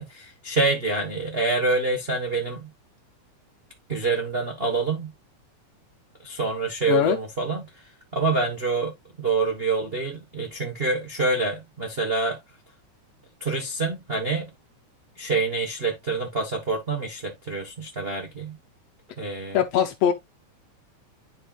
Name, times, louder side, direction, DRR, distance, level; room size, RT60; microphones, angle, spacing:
voice 1, 0.0-2.7 3.9-5.1 6.2-7.8 8.1-12.4 13.4-14.5 15.2-18.6 19.2-19.6, right 3 dB, 90° right, 0.5 m, -26 dB
voice 2, 19.5-20.1, left 9 dB, 70° left, 1.6 m, -21 dB
11.0 x 4.4 x 2.4 m
omnidirectional pair, 3.4 m